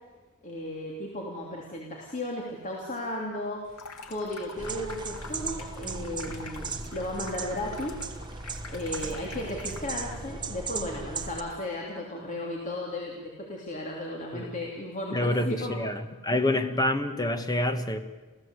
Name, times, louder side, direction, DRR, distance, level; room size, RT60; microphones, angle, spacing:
voice 1, 0.4-8.0 8.7-15.8, left 1 dB, 35° left, -2 dB, 3.1 m, -35 dB
Water tap faucet / Sink (filling or washing), 3.7-10.1, left 4 dB, 85° left, 2.4 m, -46 dB
sound 1, 4.6-11.4, right 4 dB, 20° right, 1.2 m, -37 dB
voice 2, 15.1-18.0, left 1 dB, 15° left, 8 dB, 1.5 m, -27 dB
29.0 x 15.5 x 8.2 m, 1.3 s
head